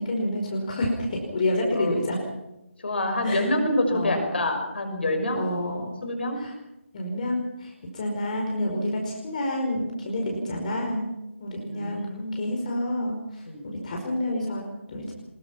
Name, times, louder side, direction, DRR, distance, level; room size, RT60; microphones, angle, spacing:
voice 1, 0.0-2.2 3.2-3.5 3.9-4.4 5.3-5.9 6.4-6.5 6.9-11.1 11.4-12.1 12.3-14.6 14.9-15.1, left 1 dB, 35° left, 1 dB, 5.1 m, -29 dB
voice 2, 2.8-5.4 6.0-6.4 11.6-12.3 13.5-13.7, left 1 dB, 55° left, 5 dB, 5.9 m, -26 dB
24.0 x 21.5 x 5.9 m, 0.92 s
figure-of-eight pair, 150°, 7 cm